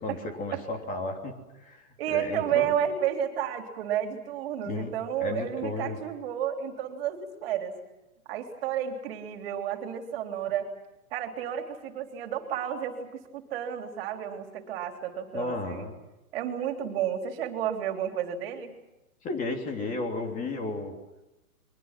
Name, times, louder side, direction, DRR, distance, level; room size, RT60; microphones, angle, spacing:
voice 1, 0.0-1.3 1.6-2.8 4.7-6.0 15.3-16.0 19.2-20.9, left 2 dB, 20° left, 4 dB, 3.3 m, -33 dB
voice 2, 2.0-7.8 8.3-10.7 11.1-15.9 16.3-18.8, right 9 dB, 40° right, 5 dB, 3.7 m, -31 dB
29.5 x 23.5 x 6.1 m, 0.98 s
hypercardioid pair, 135°, 45 cm